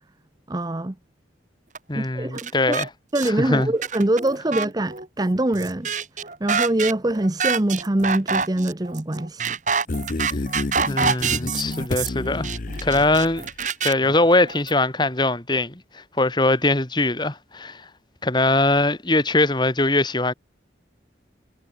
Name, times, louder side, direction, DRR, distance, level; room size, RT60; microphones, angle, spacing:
voice 1, 0.5-0.9 1.9-2.8 3.1-5.9 6.4-9.6, right 1 dB, 20° right, 0.7 m, -24 dB
sound 1, 1.7-1.8 2.3-2.9 3.1-3.3 3.6-14.7, right 6 dB, 40° right, 3.5 m, -27 dB
voice 2, 1.9-2.9 3.2-3.7 10.9-12.5 12.8-13.5 13.8-17.9 18.2-20.3, left 2 dB, 25° left, 1.9 m, -21 dB
sound 2, 9.9-13.6, left 2 dB, 45° left, 0.7 m, -30 dB
head